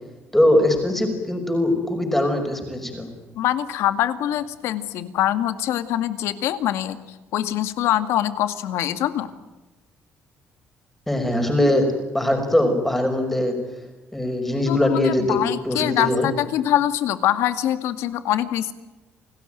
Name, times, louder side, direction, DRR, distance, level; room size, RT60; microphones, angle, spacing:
voice 1, 0.3-3.1 11.1-11.9 12.1-13.6 14.1-15.4 15.6-16.3, left 1 dB, 5° left, 5 dB, 5.7 m, -21 dB
voice 2, 3.3-9.3 14.7-18.7, left 12 dB, 85° left, 11 dB, 2.2 m, -24 dB
29.5 x 19.0 x 9.2 m, 1.1 s
cardioid pair, 175°, 4 cm